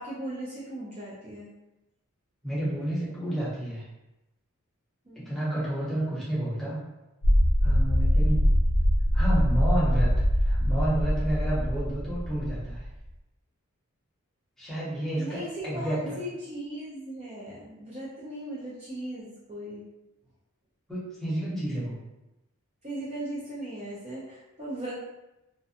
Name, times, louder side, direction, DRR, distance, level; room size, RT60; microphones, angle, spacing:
voice 1, 0.0-1.5 5.1-5.2 15.2-19.8 22.8-24.9, right 1 dB, 30° right, -8 dB, 0.5 m, -38 dB
voice 2, 2.4-3.9 5.2-6.8 7.6-8.4 9.1-10.1 10.4-12.8 14.6-16.2 20.9-22.0, right 1 dB, ahead, -9 dB, 0.8 m, -30 dB
sound 1, 7.2-13.1, equal, 60° left, 0.5 m, -23 dB
2.4 x 2.1 x 2.7 m, 0.96 s
head